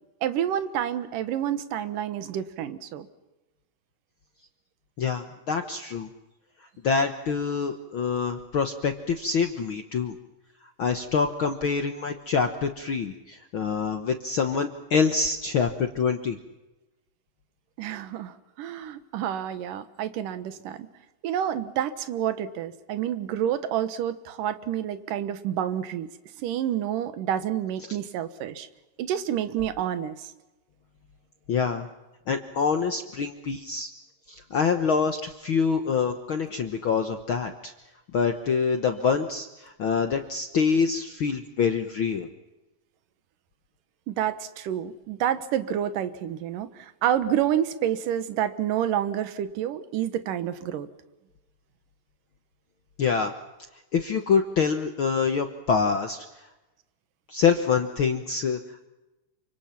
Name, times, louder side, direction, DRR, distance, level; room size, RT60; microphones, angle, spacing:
voice 1, 0.2-3.1 17.8-20.9 21.2-26.1 26.4-28.7 29.0-30.3 44.1-50.9, right 10 dB, 75° right, 10 dB, 2.8 m, -29 dB
voice 2, 5.0-6.1 6.8-10.1 10.8-16.4 31.5-31.9 32.3-33.9 34.3-37.7 38.1-42.3 53.0-53.3 53.9-56.2 57.3-58.6, left 5 dB, 70° left, 6 dB, 1.2 m, -25 dB
28.5 x 25.5 x 5.9 m, 1.0 s
omnidirectional pair, 4.0 m